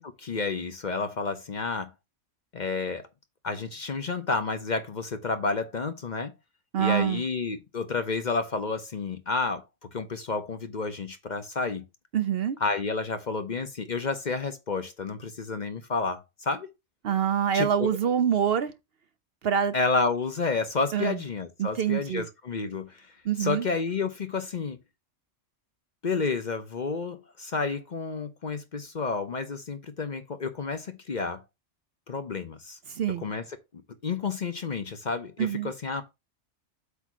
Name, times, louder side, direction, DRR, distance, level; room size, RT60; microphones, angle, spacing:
voice 1, 0.0-1.9 2.5-3.1 3.4-6.3 6.8-9.6 9.9-11.8 12.6-16.7 17.5-17.9 19.7-23.1 23.4-24.8 26.0-31.4 32.1-32.8 33.2-33.4 34.0-36.0, left 4 dB, 45° left, 0.8 m, -30 dB
voice 2, 6.7-7.2 12.1-12.6 17.0-18.7 19.4-19.7 20.9-21.2 21.6-22.3 23.2-23.7 32.9-33.2 35.4-35.7, right 8 dB, 60° right, 0.7 m, -25 dB
8.3 x 2.8 x 6.1 m
omnidirectional pair, 1.3 m